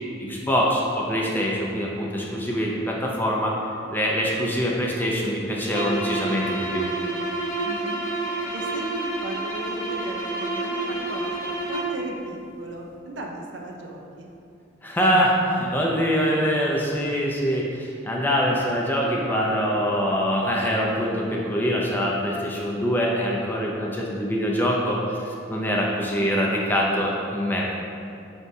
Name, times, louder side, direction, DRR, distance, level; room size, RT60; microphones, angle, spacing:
voice 1, 0.2-3.6 3.9-6.9 14.8-27.7, equal, 10° left, -3 dB, 0.4 m, -24 dB
sound 1, 5.6-12.0, right 2 dB, 85° left, 0.8 m, -29 dB
voice 2, 7.6-8.0 8.5-14.3, right 2 dB, 65° right, 0 dB, 0.5 m, -37 dB
5.2 x 3.4 x 2.6 m, 2.5 s
head